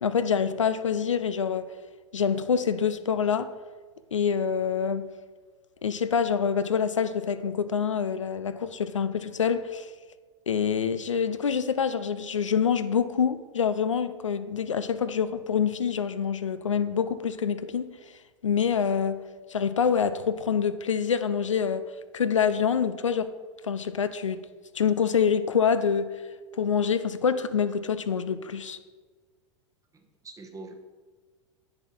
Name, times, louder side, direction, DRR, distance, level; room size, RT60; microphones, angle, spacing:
voice 1, 0.0-1.7 2.1-3.5 4.1-5.1 5.8-9.9 10.5-17.9 18.4-19.2 19.5-21.8 22.1-23.3 23.6-24.4 24.7-26.1 26.6-28.8, left 7 dB, 85° left, 0.5 m, -26 dB
voice 2, 29.9-30.7, right 3 dB, 20° right, 1.1 m, -44 dB
8.4 x 6.7 x 4.4 m
figure-of-eight pair, 90°, 16 cm